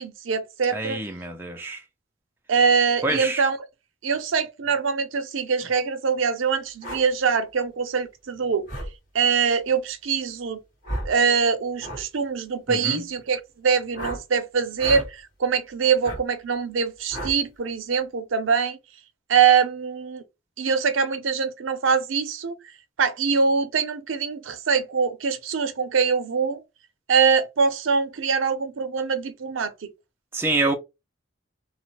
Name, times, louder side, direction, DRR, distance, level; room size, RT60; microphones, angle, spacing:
voice 1, 0.0-1.0 2.5-3.6 4.0-8.7 9.1-10.6 11.1-18.8 19.3-20.2 20.6-22.5 23.0-26.6 27.1-29.9, right 6 dB, 75° right, 0.5 m, -23 dB
voice 2, 0.7-1.8 3.0-3.4 12.7-13.0 30.3-30.7, right 2 dB, 10° right, 0.4 m, -26 dB
sound 1, 6.8-7.0 8.7-8.9 10.8-11.1 11.8-12.0 13.9-14.2 14.8-15.1 16.0-16.2 17.1-17.4, right 1 dB, 45° left, 1.6 m, -32 dB
2.9 x 2.0 x 2.9 m
head